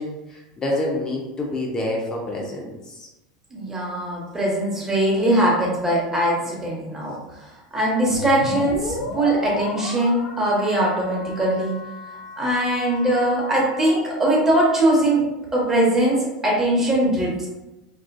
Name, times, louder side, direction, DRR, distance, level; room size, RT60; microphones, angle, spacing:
voice 1, 0.0-3.1, left 1 dB, 25° left, -1 dB, 0.5 m, -27 dB
voice 2, 3.5-7.1 7.7-11.7 12.4-17.5, right 1 dB, 15° right, -4 dB, 0.9 m, -21 dB
sound 1, 8.2-13.9, left 2 dB, 85° left, 0.5 m, -34 dB
2.4 x 2.3 x 2.2 m, 1.0 s
hypercardioid pair, 95°, 3 cm